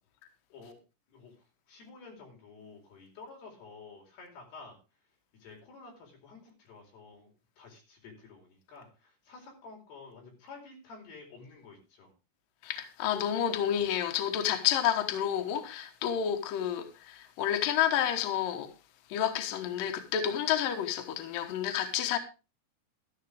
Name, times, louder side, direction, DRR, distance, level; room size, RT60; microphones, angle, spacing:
voice 1, 1.1-4.8 5.4-7.3 7.6-12.1, left 4 dB, 55° left, 6.3 m, -51 dB
voice 2, 12.6-18.7 19.1-22.2, left 10 dB, 70° left, 2.1 m, -30 dB
13.0 x 12.5 x 3.4 m
omnidirectional pair, 5.9 m